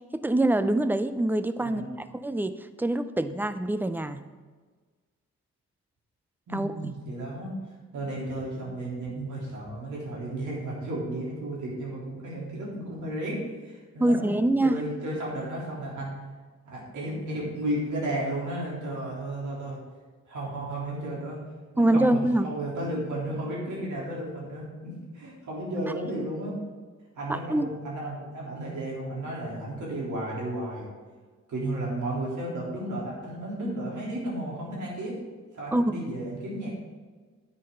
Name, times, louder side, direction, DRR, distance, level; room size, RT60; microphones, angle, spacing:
voice 1, 0.1-1.8 2.2-4.2 6.5-6.9 14.0-14.8 21.8-22.5 27.3-27.7 35.7-35.9, right 1 dB, 5° right, 12 dB, 0.5 m, -25 dB
voice 2, 6.5-7.5 7.9-14.3 14.6-16.1 16.6-19.8 20.3-21.4 21.7-26.6 27.2-30.9 31.5-35.2 35.5-36.7, right 1 dB, 90° right, -4 dB, 3.6 m, -33 dB
9.9 x 9.5 x 3.9 m, 1.4 s
wide cardioid pair, 110°, 29 cm